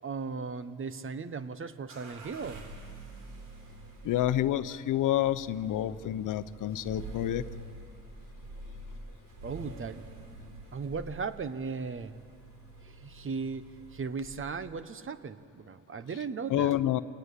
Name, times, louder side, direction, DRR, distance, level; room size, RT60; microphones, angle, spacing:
voice 1, 0.0-2.7 9.4-10.1 10.7-12.1 12.8-16.8, right 5 dB, 40° right, 13 dB, 1.2 m, -37 dB
sound 1, 1.9-14.7, right 2 dB, 80° right, 3.8 m, -47 dB
voice 2, 4.0-7.5 16.5-17.0, left 12 dB, 65° left, 14 dB, 0.8 m, -28 dB
27.0 x 18.5 x 8.4 m, 2.3 s
cardioid pair, 80°, 33 cm